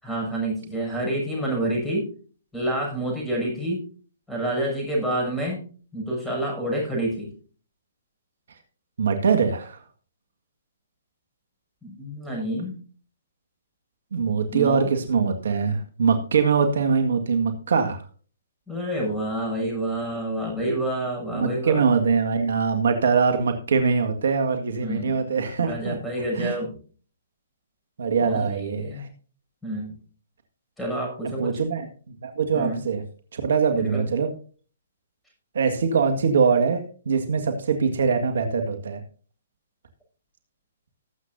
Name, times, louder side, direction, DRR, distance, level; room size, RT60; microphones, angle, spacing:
voice 1, 0.0-2.1 2.5-3.8 4.3-5.6 5.9-7.3 11.8-12.8 14.5-14.9 18.7-21.8 24.8-25.2 25.6-26.8 28.2-29.1 29.6-29.9 30.8-31.6 32.5-32.8 33.7-34.1, right 1 dB, 5° left, -2 dB, 6.6 m, -28 dB
voice 2, 9.0-9.8 14.1-18.0 21.3-26.0 26.4-26.6 28.0-29.1 31.4-31.9 32.2-33.0 33.3-34.3 35.5-39.0, right 5 dB, 70° right, 6 dB, 1.8 m, -23 dB
19.0 x 8.3 x 2.7 m, 0.40 s
hypercardioid pair, 135°, 0 cm